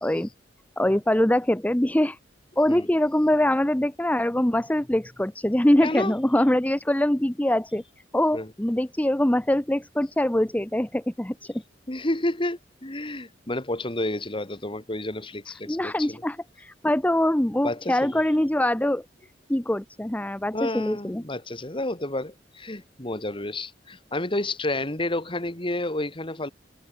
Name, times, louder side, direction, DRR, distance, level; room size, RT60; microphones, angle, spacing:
voice 1, 0.8-2.2 2.6-7.8 8.1-11.5 15.7-19.0 19.5-21.2, left 1 dB, 10° left, 0.7 m, -23 dB
voice 2, 5.8-6.1 8.3-8.5 11.9-16.2 17.6-18.2 20.5-26.5, left 1 dB, 30° left, 2.5 m, -30 dB
head